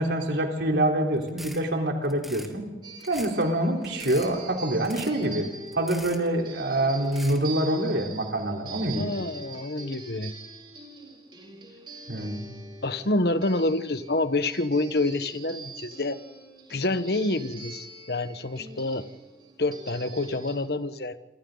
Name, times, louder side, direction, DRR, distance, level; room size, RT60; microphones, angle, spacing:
voice 1, 0.0-2.6 3.1-5.5 5.7-9.1 12.1-12.5, right 1 dB, 85° right, 1 dB, 3.9 m, -26 dB
sound 1, 1.2-1.6 2.0-2.5 3.0-3.4 3.8-4.3 4.8-5.3 5.7-6.3 7.0-7.4, equal, ahead, 2.4 m, -42 dB
sound 2, 2.8-20.6, right 4 dB, 25° right, 4.6 m, -44 dB
voice 2, 8.9-10.3 12.8-16.2 16.7-19.1 19.6-21.2, left 2 dB, 65° left, 11 dB, 1.3 m, -27 dB
28.0 x 26.0 x 4.0 m, 1.2 s
head